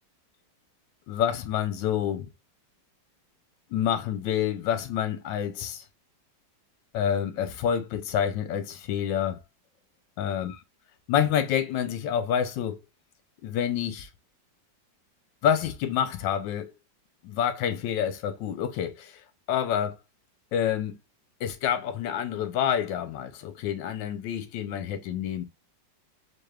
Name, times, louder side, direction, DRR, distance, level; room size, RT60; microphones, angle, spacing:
voice 1, 1.1-2.3 3.7-5.8 6.9-9.4 10.2-10.6 11.1-12.8 13.4-14.1 15.4-16.7 17.2-19.1 19.5-20.0 20.5-21.0 21.4-25.4, left 9 dB, 80° left, 1.3 m, -28 dB
4.7 x 3.1 x 2.3 m
omnidirectional pair, 2.0 m